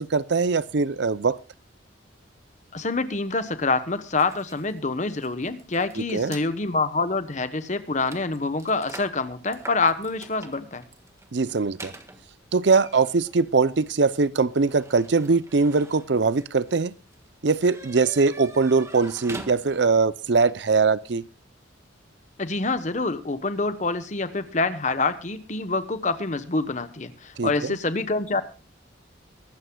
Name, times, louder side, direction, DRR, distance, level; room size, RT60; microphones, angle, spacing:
voice 1, 0.0-1.4 6.1-6.4 11.3-11.9 12.5-16.9 17.4-21.2 27.4-27.8, right 4 dB, 60° right, 17 dB, 0.6 m, -22 dB
voice 2, 2.7-10.8 22.4-28.4, left 3 dB, 40° left, 12 dB, 1.1 m, -26 dB
sound 1, 4.2-6.5 7.2-7.3 7.6-20.1, right 2 dB, 15° right, 1.5 m, -45 dB
23.0 x 13.0 x 2.3 m, 0.32 s
head